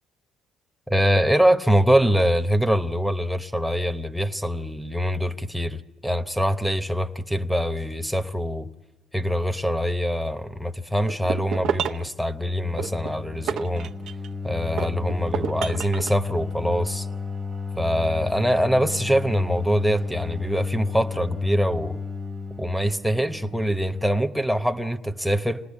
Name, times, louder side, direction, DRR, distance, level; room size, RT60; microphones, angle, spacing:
voice 1, 0.9-8.7 9.1-13.9 14.4-17.1 17.8-22.0 22.6-25.6, equal, ahead, 0.9 m, -24 dB
sound 1, 11.1-12.1 12.8-14.3 14.8-16.1, right 8 dB, 80° right, 1.0 m, -30 dB
sound 2, 12.4-24.3, left 5 dB, 25° right, 1.2 m, -33 dB
27.0 x 19.0 x 8.6 m
cardioid pair, 105°, 0 cm